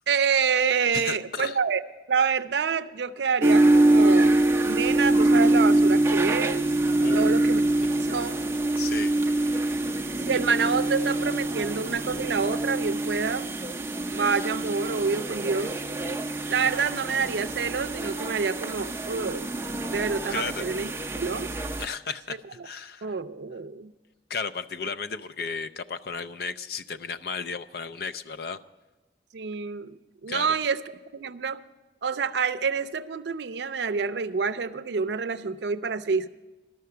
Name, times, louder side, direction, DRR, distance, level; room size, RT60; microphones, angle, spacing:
voice 1, 0.1-1.8 2.1-6.7 7.1-7.6 8.0-8.4 10.2-13.5 14.1-15.8 16.5-19.5 19.9-20.9 21.2-21.5 23.0-23.9 29.3-30.8 31.1-31.6 32.0-36.3, right 5 dB, 75° right, 12 dB, 0.5 m, -27 dB
voice 2, 0.9-1.6 7.0-7.3 8.0-8.1 8.8-9.1 20.3-20.7 21.8-23.2 24.3-28.6 30.3-30.5, left 5 dB, 55° left, 11 dB, 0.4 m, -34 dB
sound 1, 3.4-21.9, right 2 dB, 15° right, 0.5 m, -24 dB
12.0 x 6.7 x 9.4 m, 1.1 s
head